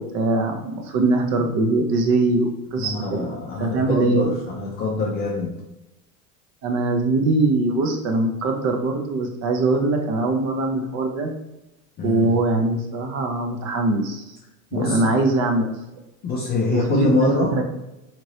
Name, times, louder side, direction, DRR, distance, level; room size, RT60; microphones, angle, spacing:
voice 1, 0.0-3.3 3.6-4.4 6.6-11.3 12.0-14.2 14.7-15.8 16.7-17.6, right 2 dB, 40° right, 4 dB, 0.5 m, -22 dB
voice 2, 2.8-5.5 12.0-12.3 14.7-15.1 16.2-17.5, left 3 dB, 25° left, -2 dB, 0.4 m, -25 dB
2.9 x 2.6 x 3.0 m, 0.93 s
supercardioid pair, 120°, 45 cm